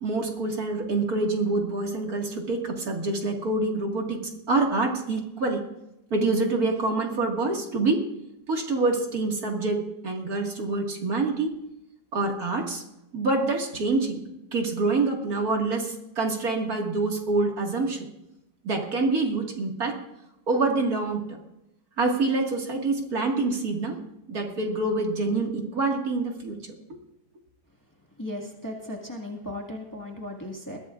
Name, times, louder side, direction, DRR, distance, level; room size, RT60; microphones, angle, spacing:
voice 1, 0.0-5.6 6.1-8.1 8.5-11.6 12.1-12.8 13.1-14.2 14.5-18.1 18.6-20.0 20.5-21.4 22.0-24.0 24.3-27.0, right 3 dB, 60° right, 1 dB, 2.4 m, -26 dB
voice 2, 28.2-30.8, left 1 dB, 10° left, -1 dB, 1.7 m, -36 dB
21.0 x 15.5 x 2.5 m, 0.85 s
omnidirectional pair, 1.8 m